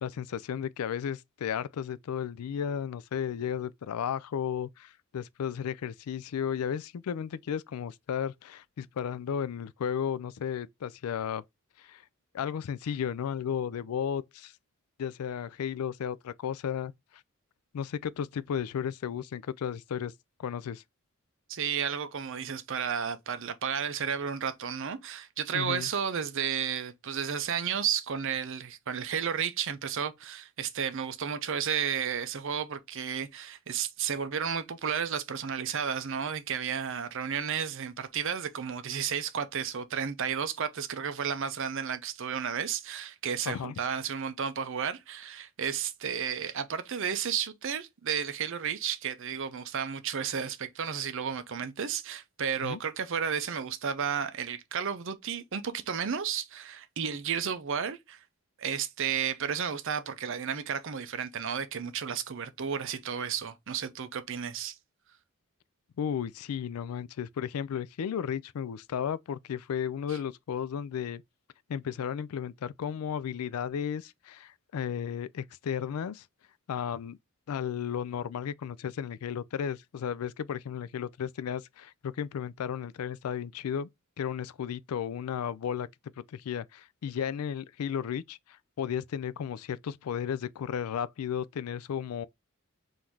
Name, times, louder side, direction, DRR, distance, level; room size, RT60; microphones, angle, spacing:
voice 1, 0.0-11.4 11.8-12.0 12.3-14.5 15.0-16.9 17.7-20.1 20.4-20.8 25.5-25.9 43.5-43.7 52.6-52.8 66.0-71.2 71.7-76.2 76.7-77.2 77.5-83.9 84.2-85.9 86.3-92.3, left 8 dB, 85° left, 0.4 m, -34 dB
voice 2, 21.5-58.2 58.6-64.7 70.1-70.2, right 7 dB, 60° right, 0.6 m, -32 dB
3.8 x 2.7 x 4.5 m
head